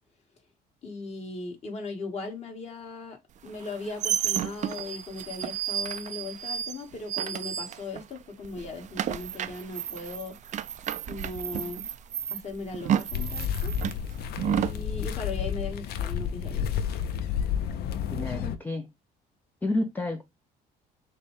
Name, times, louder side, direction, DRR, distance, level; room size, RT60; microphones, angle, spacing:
voice 1, 0.8-3.2 3.4-10.4 11.0-11.9 12.3-13.7 14.6-16.7, left 3 dB, 40° left, 1.8 m, -38 dB
sound 1, 3.5-8.2 8.4-14.8, right 10 dB, 45° right, 0.4 m, -31 dB
sound 2, 13.1-18.6, left 8 dB, 70° left, 0.6 m, -31 dB
voice 2, 18.1-18.9 19.6-20.2, left 1 dB, 10° left, 0.5 m, -30 dB
6.6 x 2.2 x 3.3 m
cardioid pair, 110°, 17 cm